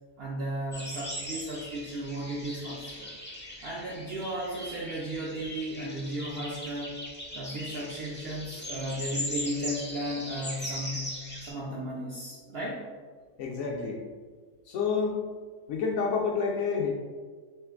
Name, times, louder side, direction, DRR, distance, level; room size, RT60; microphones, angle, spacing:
voice 1, 0.2-3.1 3.6-6.9 7.3-12.8, right 1 dB, 65° right, -4 dB, 0.6 m, -35 dB
sound 1, 0.7-11.5, left 1 dB, 15° left, 0.4 m, -39 dB
voice 2, 13.4-14.0 14.7-15.2 15.7-16.9, left 5 dB, 65° left, -1 dB, 0.8 m, -28 dB
3.2 x 3.1 x 3.5 m, 1.5 s
omnidirectional pair, 1.5 m